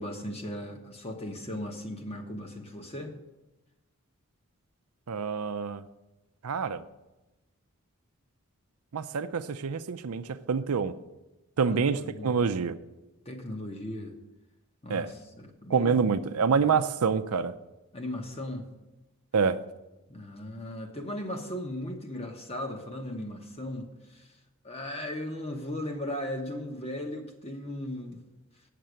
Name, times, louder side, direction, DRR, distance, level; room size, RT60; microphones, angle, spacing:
voice 1, 0.0-3.2 11.6-12.3 13.2-14.1 14.8-16.1 16.5-16.7 17.9-18.7 20.1-24.3 24.6-28.2, left 1 dB, 25° left, 4 dB, 1.1 m, -37 dB
voice 2, 5.1-5.8 6.4-6.8 8.9-10.9 11.6-12.8 14.9-15.1 15.7-17.5 19.3-19.6, right 5 dB, 85° right, 10 dB, 0.5 m, -27 dB
8.8 x 6.7 x 8.0 m, 1.0 s
head